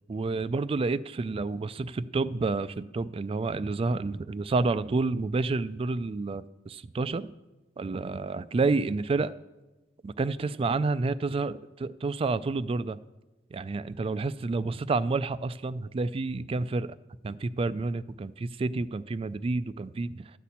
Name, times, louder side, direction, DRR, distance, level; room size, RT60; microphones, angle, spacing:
voice 1, 0.1-7.3 7.8-9.3 10.0-13.0 13.5-16.9 17.2-20.3, right 3 dB, 30° right, 15 dB, 0.3 m, -29 dB
12.5 x 4.3 x 8.3 m, 1.1 s
head